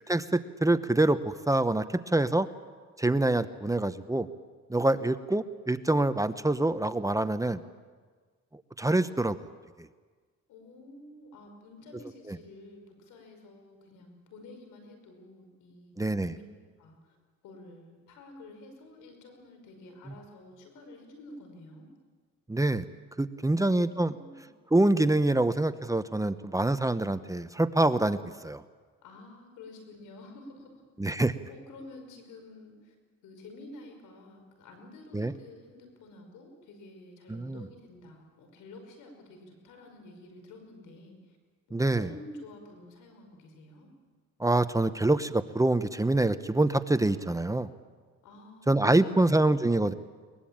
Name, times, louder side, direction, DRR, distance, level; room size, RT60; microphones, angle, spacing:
voice 1, 0.1-1.8 2.1-2.5 3.0-4.3 4.7-7.6 8.8-9.4 16.0-16.3 22.5-22.8 23.2-24.2 24.7-28.2 28.4-28.6 31.0-31.3 35.1-35.3 37.3-37.6 41.7-42.1 44.4-47.7 48.7-49.9, right 2 dB, 10° right, 12 dB, 0.9 m, -25 dB
voice 2, 10.5-16.0 16.2-16.4 16.8-17.2 17.4-21.9 23.4-24.4 29.0-30.8 31.5-32.9 33.2-41.4 42.0-43.9 48.2-49.5, left 2 dB, 90° left, 5 dB, 5.4 m, -50 dB
22.5 x 21.0 x 8.9 m, 1.5 s
cardioid pair, 90°, 30 cm